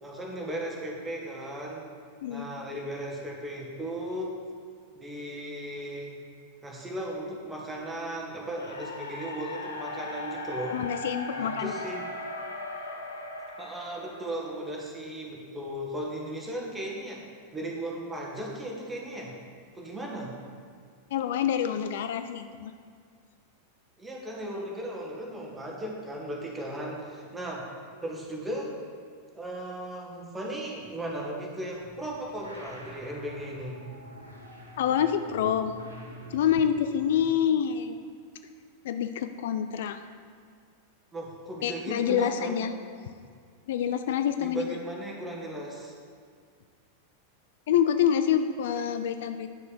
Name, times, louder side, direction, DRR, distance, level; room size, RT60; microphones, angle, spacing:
voice 1, 0.0-1.9 2.3-4.3 4.9-6.2 6.6-10.8 11.4-12.0 13.6-17.2 17.5-19.3 19.7-20.3 24.0-27.7 28.0-28.7 29.3-33.8 37.1-37.2 41.1-42.6 44.4-45.9, right 1 dB, 10° right, -2 dB, 1.7 m, -36 dB
sound 1, 8.6-14.7, left 2 dB, 75° left, 0.9 m, -38 dB
voice 2, 10.7-11.7 21.1-22.7 34.8-35.7 36.3-38.0 38.8-40.0 41.6-42.7 43.7-44.8 47.7-49.5, left 9 dB, 55° left, 9 dB, 0.3 m, -27 dB
sound 2, 31.7-37.2, equal, 80° right, 1.4 m, -46 dB
9.5 x 6.5 x 4.7 m, 2.1 s
figure-of-eight pair, 90°, 0 cm